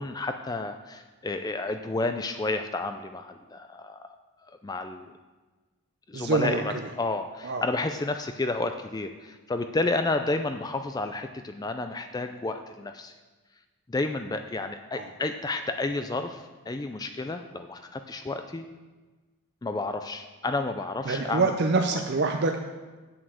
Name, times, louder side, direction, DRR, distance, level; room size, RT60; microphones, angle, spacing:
voice 1, 0.0-4.1 4.6-5.1 6.1-13.1 13.9-18.7 19.6-21.5, left 2 dB, 15° left, 7 dB, 0.3 m, -31 dB
voice 2, 6.1-6.6 7.4-7.6 14.9-15.1 21.1-22.6, right 3 dB, 50° right, 4 dB, 0.5 m, -25 dB
8.2 x 7.7 x 6.3 m, 1.3 s
head